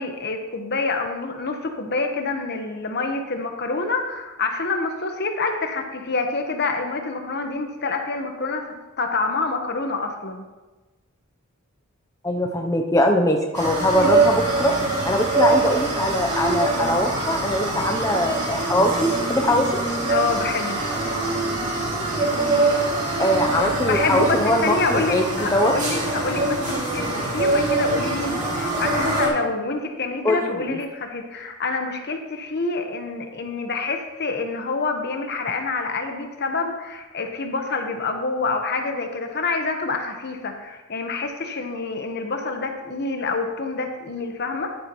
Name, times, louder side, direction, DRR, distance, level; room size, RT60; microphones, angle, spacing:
voice 1, 0.0-10.4 14.0-14.1 20.1-20.8 23.8-44.8, left 3 dB, 50° left, 5 dB, 1.1 m, -27 dB
voice 2, 12.2-14.7 15.1-19.8 23.2-25.8 30.2-30.8, left 1 dB, 15° left, 3 dB, 0.5 m, -22 dB
sound 1, 13.5-29.3, right 2 dB, 35° right, 2.6 m, -24 dB
11.5 x 9.3 x 3.0 m, 1.2 s
head